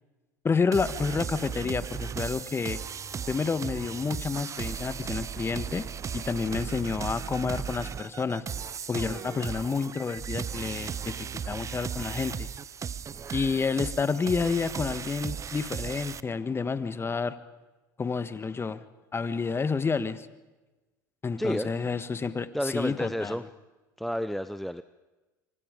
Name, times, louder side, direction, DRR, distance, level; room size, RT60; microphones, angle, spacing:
voice 1, 0.4-2.8 3.3-5.8 6.1-8.4 8.9-12.5 13.3-17.4 18.0-18.8 19.1-20.3 21.2-23.4, left 5 dB, 25° left, 13 dB, 1.5 m, -29 dB
sound 1, 0.7-16.2, right 7 dB, 30° right, 0.8 m, -36 dB
voice 2, 21.4-21.7 22.5-23.4 24.0-24.8, equal, ahead, 13 dB, 0.7 m, -30 dB
26.0 x 24.5 x 5.2 m, 1.1 s
hypercardioid pair, 80°, 10 cm